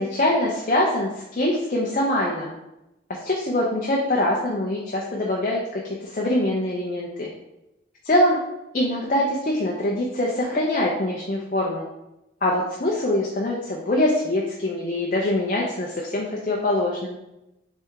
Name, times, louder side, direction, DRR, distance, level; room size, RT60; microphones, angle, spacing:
voice 1, 0.0-2.5 3.2-5.6 6.1-7.3 8.1-8.4 8.7-11.8 12.4-17.2, left 1 dB, 40° left, -2 dB, 0.6 m, -23 dB
3.5 x 3.3 x 4.5 m, 0.91 s
head